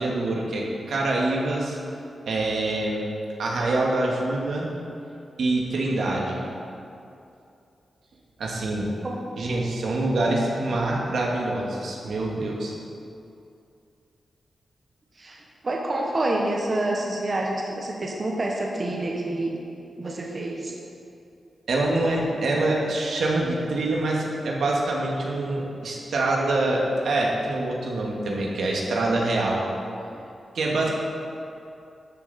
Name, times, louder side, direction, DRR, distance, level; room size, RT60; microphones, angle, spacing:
voice 1, 0.0-1.8 2.3-3.0 3.4-4.7 5.4-6.4 8.4-8.9 9.4-12.7 21.7-29.6 30.5-30.9, right 2 dB, 85° right, -2 dB, 1.7 m, -25 dB
voice 2, 15.2-19.6 20.0-20.7, right 1 dB, 35° right, -1 dB, 1.0 m, -27 dB
12.5 x 7.1 x 4.1 m, 2.6 s
wide cardioid pair, 135°, 0 cm